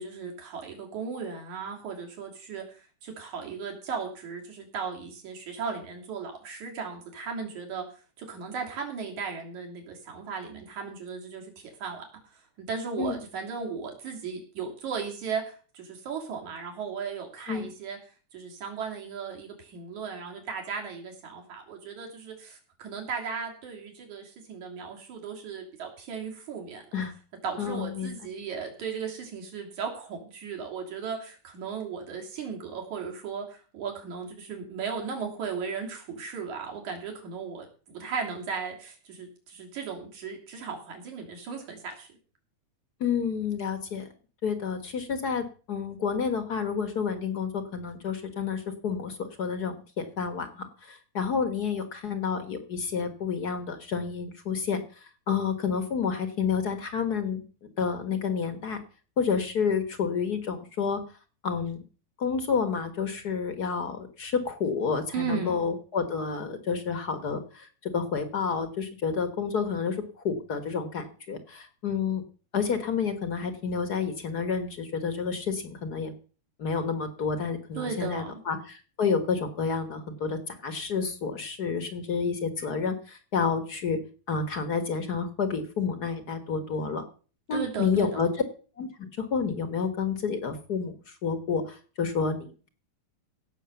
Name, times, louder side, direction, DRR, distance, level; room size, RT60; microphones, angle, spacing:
voice 1, 0.0-7.8 8.2-12.1 12.6-18.0 18.3-26.8 27.4-42.1 65.1-65.6 77.8-78.3 87.5-88.1, right 5 dB, 70° right, 1 dB, 4.4 m, -36 dB
voice 2, 27.6-28.1 43.0-44.1 44.4-57.4 57.8-58.8 59.2-61.0 61.4-61.8 62.2-72.2 72.5-76.1 76.6-84.0 84.3-87.0 87.5-88.3 88.8-92.7, left 5 dB, 45° left, 8 dB, 1.4 m, -29 dB
16.5 x 6.4 x 7.0 m, 0.39 s
omnidirectional pair, 3.5 m